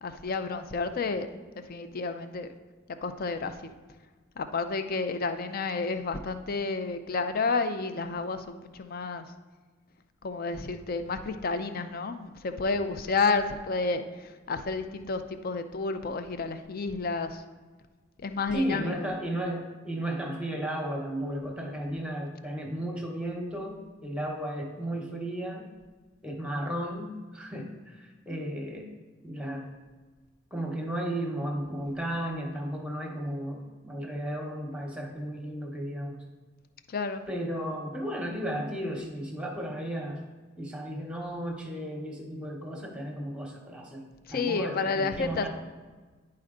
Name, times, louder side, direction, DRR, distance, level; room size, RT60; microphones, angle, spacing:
voice 1, 0.0-1.3 1.7-2.5 3.0-3.5 4.4-9.3 10.2-14.0 14.5-17.4 18.2-18.9 36.9-37.2 44.3-45.5, left 4 dB, 45° left, 9 dB, 0.5 m, -30 dB
voice 2, 18.5-25.6 26.2-28.9 29.2-29.7 30.5-36.2 37.3-40.3 40.6-44.0 44.3-45.5, right 1 dB, 5° right, 1 dB, 1.0 m, -34 dB
10.5 x 4.3 x 3.8 m, 1.3 s
head